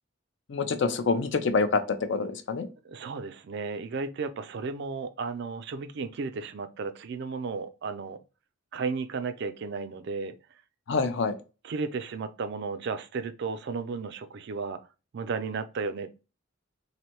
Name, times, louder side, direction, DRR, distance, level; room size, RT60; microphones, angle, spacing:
voice 1, 0.5-2.7 10.9-11.4, left 4 dB, 55° left, 0.4 m, -26 dB
voice 2, 2.8-8.2 8.7-10.4 11.6-14.8 15.1-16.1, right 4 dB, 50° right, 0.3 m, -34 dB
3.2 x 2.6 x 2.8 m
head